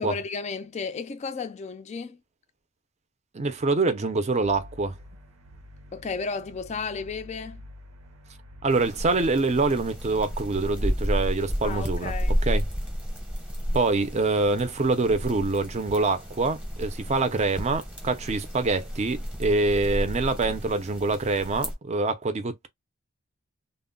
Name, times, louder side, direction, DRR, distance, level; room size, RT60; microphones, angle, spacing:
voice 1, 0.0-2.2 5.9-7.6 11.6-12.4, left 4 dB, 30° left, 0.3 m, -33 dB
voice 2, 3.3-5.0 8.6-12.1 12.4-12.7 13.7-22.7, right 3 dB, 30° right, 0.5 m, -25 dB
sound 1, 4.4-10.8, left 1 dB, 85° right, 0.6 m, -47 dB
sound 2, 8.7-21.7, equal, 5° right, 0.7 m, -32 dB
2.0 x 2.0 x 3.7 m
head